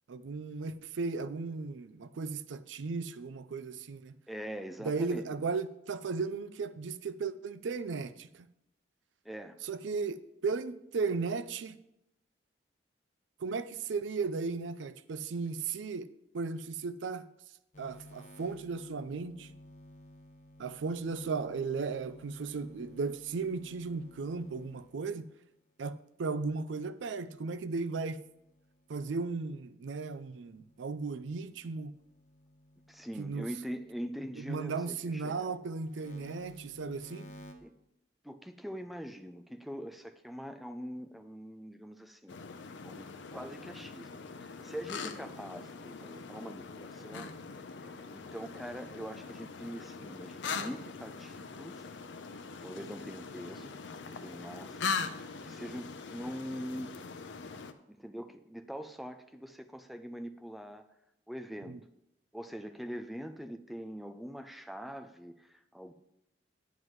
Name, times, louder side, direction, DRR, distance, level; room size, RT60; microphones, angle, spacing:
voice 1, 0.1-4.1 4.8-8.5 9.6-11.8 13.4-16.1 16.3-17.2 17.8-19.5 20.6-25.3 25.8-28.2 28.9-31.9 33.2-33.5 34.4-37.3 61.7-61.8, right 4 dB, 85° right, 0.4 m, -36 dB
voice 2, 4.3-5.2 9.2-9.6 32.9-35.6 37.6-37.7 38.2-42.4 42.8-47.3 47.8-51.9 52.6-53.8 54.1-57.0 57.4-57.5 57.9-60.9 61.3-61.8 62.3-65.9, equal, ahead, 0.4 m, -43 dB
sound 1, 17.7-25.2 27.2-29.4 29.8-34.6 35.0-37.5, left 1 dB, 40° left, 0.9 m, -55 dB
sound 2, 42.3-57.7, left 5 dB, 80° left, 0.6 m, -41 dB
9.3 x 9.2 x 3.1 m
head